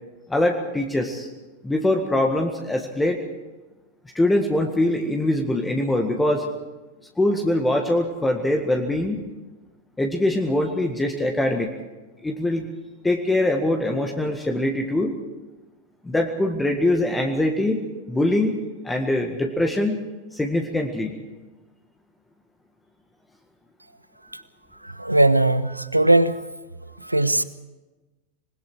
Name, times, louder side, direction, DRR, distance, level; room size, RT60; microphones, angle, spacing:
voice 1, 0.3-1.3 1.6-3.2 4.1-6.5 7.2-9.2 10.0-11.7 12.2-12.7 13.0-15.2 16.0-17.8 18.1-18.6 18.8-20.0 20.3-21.1, left 1 dB, 10° left, 3 dB, 1.9 m, -23 dB
voice 2, 24.8-26.4 27.0-27.4, right 2 dB, 85° right, 15 dB, 0.9 m, -19 dB
26.5 x 21.0 x 4.8 m, 1.1 s
figure-of-eight pair, 90°, 0 cm